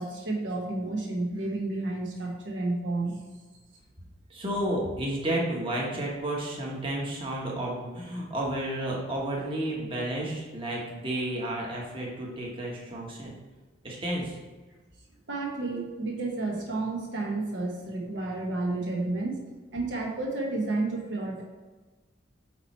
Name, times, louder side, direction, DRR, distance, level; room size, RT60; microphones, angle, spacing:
voice 1, 0.0-3.2 15.3-19.4 19.7-21.4, right 2 dB, 70° right, -1 dB, 1.1 m, -31 dB
voice 2, 4.3-13.3 13.8-14.4, right 1 dB, 25° right, -3 dB, 1.2 m, -31 dB
8.6 x 3.0 x 4.4 m, 1.3 s
head